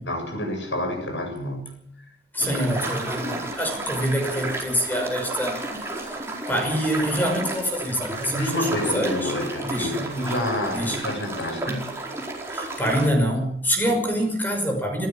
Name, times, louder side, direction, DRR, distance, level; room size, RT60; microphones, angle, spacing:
voice 1, 0.0-1.8 2.4-3.2 6.5-6.6 8.2-12.0 13.8-14.0, left 1 dB, 75° left, 4 dB, 7.5 m, -29 dB
voice 2, 2.3-5.6 5.9-6.1 6.5-9.3 9.6-9.9 10.7-11.0 12.5-15.1, equal, 10° left, 3 dB, 5.9 m, -25 dB
sound 1, 2.4-13.1, right 2 dB, 15° right, 4.6 m, -32 dB
26.5 x 13.0 x 7.4 m, 0.71 s
head